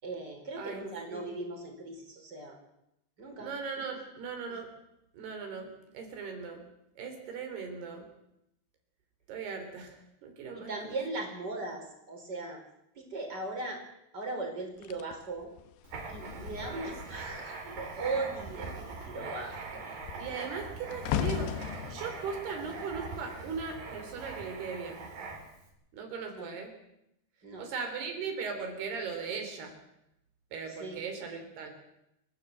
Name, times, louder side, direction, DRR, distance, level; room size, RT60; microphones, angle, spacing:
voice 1, 0.0-2.6 3.2-3.5 10.5-12.6 13.0-13.8 14.1-15.5 16.1-19.9 26.3-26.5 27.4-27.7 30.7-31.0, right 3 dB, 25° right, 3 dB, 4.9 m, -38 dB
voice 2, 0.6-1.3 3.4-4.7 5.1-6.7 7.0-8.1 9.3-11.0 16.6-16.9 20.2-21.6 21.9-25.1 25.9-26.7 27.6-29.7 30.5-31.7, right 5 dB, 75° right, 5 dB, 5.5 m, -38 dB
sound 1, 14.8-17.5 17.8-18.2 18.5-23.9 24.6-24.9, left 9 dB, 85° left, 3.2 m, -38 dB
Writing, 15.8-25.7, right 4 dB, 60° right, 5.1 m, -42 dB
30.0 x 12.0 x 7.9 m, 0.84 s
omnidirectional pair, 4.6 m